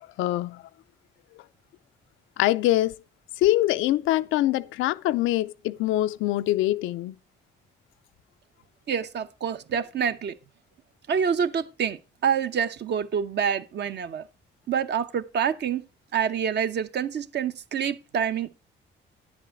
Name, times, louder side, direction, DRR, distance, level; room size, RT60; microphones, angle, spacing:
voice 1, 0.2-0.6 2.4-3.0 3.4-7.1, left 15 dB, 90° left, 0.5 m, -24 dB
voice 2, 8.9-10.3 11.1-14.3 14.7-15.8 16.1-18.5, right 7 dB, 60° right, 0.9 m, -27 dB
10.5 x 7.7 x 4.7 m
cardioid pair, 90°, 20 cm